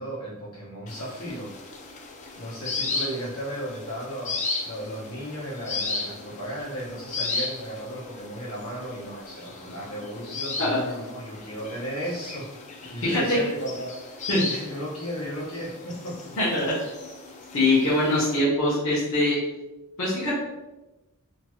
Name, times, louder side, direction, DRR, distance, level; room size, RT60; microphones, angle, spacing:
voice 1, 0.0-1.5 2.3-4.3 4.6-12.5 12.8-16.4, equal, 85° left, -7 dB, 1.2 m, -35 dB
sound 1, 0.9-18.4, left 3 dB, 30° left, 0.4 m, -36 dB
voice 2, 13.0-13.4 14.3-14.6 16.4-16.7 17.5-19.4 20.0-20.4, left 1 dB, 65° left, -9 dB, 1.0 m, -23 dB
2.9 x 2.4 x 3.0 m, 1.0 s
head